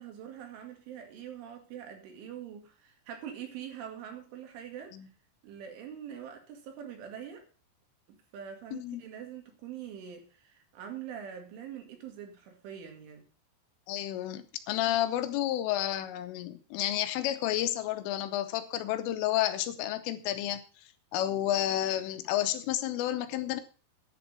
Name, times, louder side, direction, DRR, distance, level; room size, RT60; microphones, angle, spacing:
voice 1, 0.0-5.0 5.4-7.4 8.1-13.3, right 9 dB, 70° right, 4.6 m, -44 dB
voice 2, 8.7-9.0 13.9-20.6 21.1-23.6, left 13 dB, 80° left, 3.3 m, -31 dB
10.5 x 7.7 x 7.0 m
omnidirectional pair, 5.9 m